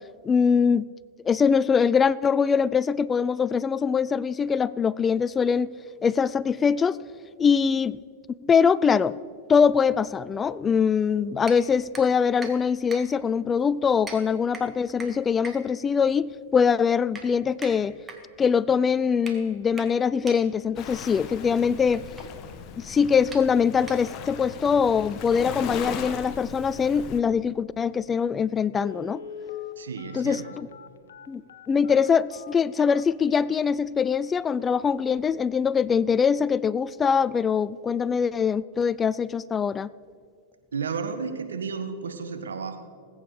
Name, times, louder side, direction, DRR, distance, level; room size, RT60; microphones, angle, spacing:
voice 1, 0.2-0.8 1.2-5.7 6.0-7.0 7.4-8.0 8.4-9.2 9.5-17.9 18.4-22.0 22.8-29.2 30.1-30.7 31.3-39.9, left 6 dB, 20° left, 20 dB, 0.3 m, -23 dB
sound 1, 11.4-24.4, right 3 dB, 20° right, 1.9 m, -45 dB
Waves surf, 20.7-27.2, left 7 dB, 40° left, 1.2 m, -38 dB
Telephone, 28.0-28.1 28.7-33.6 34.1-34.2 34.6-34.8 35.1-35.4 35.8-35.9, left 8 dB, 80° left, 0.9 m, -41 dB
voice 2, 29.8-30.5 40.7-42.8, right 5 dB, 85° right, 7 dB, 1.4 m, -32 dB
20.0 x 8.8 x 4.8 m, 2.2 s
hypercardioid pair, 110°, 0 cm